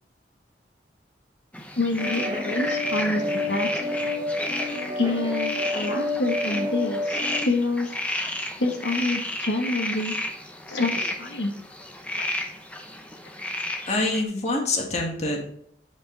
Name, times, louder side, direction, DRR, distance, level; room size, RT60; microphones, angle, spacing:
sound 1, 1.5-14.2, left 1 dB, 10° left, 0.8 m, -32 dB
voice 1, 1.8-3.9 5.0-8.0 8.6-10.1 10.7-11.6 12.2-12.3, left 2 dB, 85° left, 2 dB, 1.1 m, -27 dB
sound 2, 2.0-7.4, left 2 dB, 20° right, 1.1 m, -29 dB
voice 2, 13.9-15.4, left 2 dB, 40° left, 1 dB, 1.7 m, -25 dB
9.1 x 5.2 x 3.9 m, 0.66 s
head